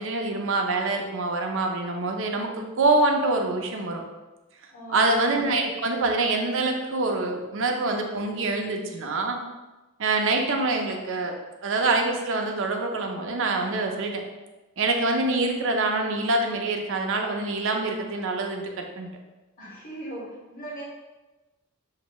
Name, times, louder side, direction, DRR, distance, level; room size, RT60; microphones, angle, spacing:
voice 1, 0.0-4.0 4.9-9.4 10.0-11.3 11.6-14.2 14.8-19.1, right 2 dB, 65° right, 2 dB, 0.6 m, -25 dB
voice 2, 4.7-5.1 19.6-20.8, right 1 dB, 40° left, -7 dB, 1.5 m, -38 dB
6.5 x 2.7 x 3.0 m, 1.1 s
head